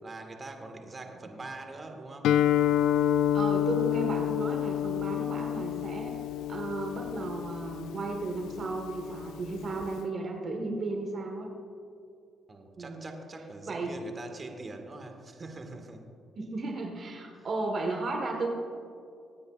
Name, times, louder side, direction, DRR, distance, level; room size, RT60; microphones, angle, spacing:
voice 1, 0.0-2.3 12.5-16.0 17.4-17.5, right 2 dB, 35° right, 4 dB, 1.7 m, -43 dB
Guitar, 2.2-10.0, left 11 dB, 85° left, 0.3 m, -29 dB
voice 2, 3.3-6.2 6.5-11.5 12.8-13.0 13.6-13.9 16.4-18.5, right 3 dB, 50° right, 2 dB, 1.4 m, -34 dB
24.0 x 9.5 x 2.4 m, 2.5 s
cardioid pair, 75°, 0 cm